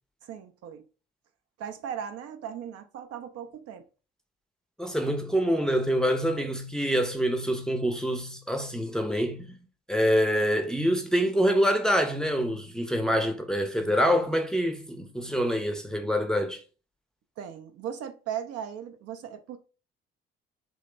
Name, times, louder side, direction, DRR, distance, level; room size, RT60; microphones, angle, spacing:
voice 1, 0.2-0.9 1.6-3.9 17.4-19.6, right 9 dB, 55° right, 0.5 m, -37 dB
voice 2, 4.8-9.6 9.9-16.6, equal, ahead, 0.6 m, -26 dB
3.0 x 2.0 x 3.2 m
hypercardioid pair, 45°, 29 cm